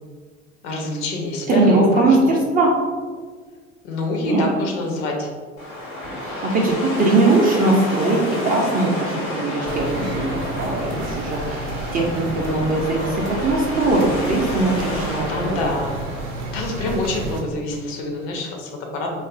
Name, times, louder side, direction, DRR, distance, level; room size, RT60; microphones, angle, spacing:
voice 1, 0.6-2.4 3.8-5.3 15.3-16.0 16.5-19.2, left 2 dB, 65° left, 1 dB, 0.7 m, -26 dB
voice 2, 1.5-2.7 4.3-4.4 6.4-15.7, right 2 dB, 25° right, -1 dB, 0.4 m, -20 dB
sound 1, 5.6-16.7, left 1 dB, 85° left, 1.0 m, -31 dB
sound 2, 9.7-17.4, right 2 dB, 70° right, 0.6 m, -31 dB
2.5 x 2.4 x 2.4 m, 1.5 s
hypercardioid pair, 70°, 37 cm